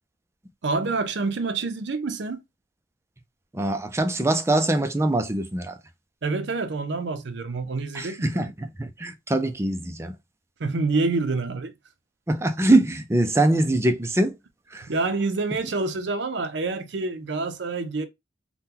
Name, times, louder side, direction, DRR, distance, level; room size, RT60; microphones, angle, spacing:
voice 1, 0.6-2.4 6.2-8.5 10.6-11.7 14.9-18.1, right 3 dB, 60° right, 0.6 m, -27 dB
voice 2, 3.5-5.8 7.9-10.2 12.3-14.4 14.7-14.9, right 1 dB, 15° right, 0.4 m, -23 dB
3.6 x 2.2 x 2.8 m
head